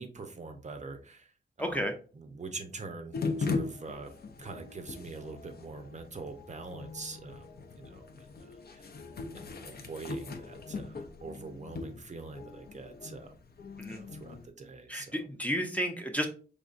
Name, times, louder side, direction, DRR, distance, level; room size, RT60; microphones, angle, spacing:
voice 1, 0.0-1.3 1.6-1.8 2.1-4.1 4.4-7.5 7.8-8.9 9.3-13.4 13.9-15.3, right 3 dB, 40° right, 7 dB, 0.6 m, -44 dB
voice 2, 1.6-1.9 13.8-14.0 14.9-16.3, equal, 10° left, 4 dB, 0.5 m, -32 dB
sound 1, 3.1-14.5, left 4 dB, 60° left, 0.6 m, -40 dB
5.2 x 3.6 x 2.4 m, 0.38 s
wide cardioid pair, 160°, 18 cm